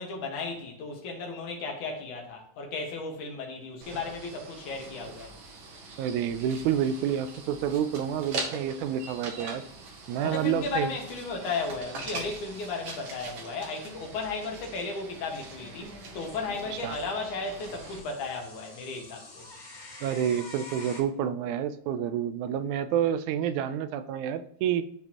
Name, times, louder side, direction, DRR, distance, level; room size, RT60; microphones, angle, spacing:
voice 1, 0.0-5.3 10.2-19.5, left 3 dB, 80° left, 3.0 m, -35 dB
sound 1, 3.8-18.0, right 3 dB, 55° right, 1.6 m, -42 dB
voice 2, 6.0-9.6 10.1-10.9 16.8-17.0 20.0-24.9, right 9 dB, 85° right, 2.0 m, -29 dB
sound 2, 12.0-15.0 15.6-17.1 17.6-21.0, left 2 dB, 55° left, 3.7 m, -49 dB
13.0 x 4.4 x 2.9 m
omnidirectional pair, 3.4 m